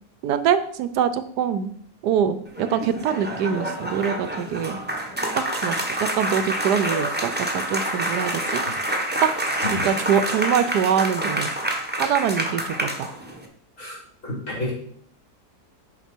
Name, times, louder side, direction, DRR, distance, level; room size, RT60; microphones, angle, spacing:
voice 1, 0.2-1.7 2.0-4.8 5.6-5.8 6.1-8.6 9.8-11.5 12.0-13.1, right 8 dB, 75° right, 13 dB, 1.1 m, -24 dB
sound 1, 2.4-13.4, right 1 dB, 5° right, 1.0 m, -27 dB
voice 2, 13.8-14.7, left 1 dB, 45° left, -6 dB, 4.2 m, -30 dB
9.0 x 5.8 x 4.4 m, 0.63 s
omnidirectional pair, 1.8 m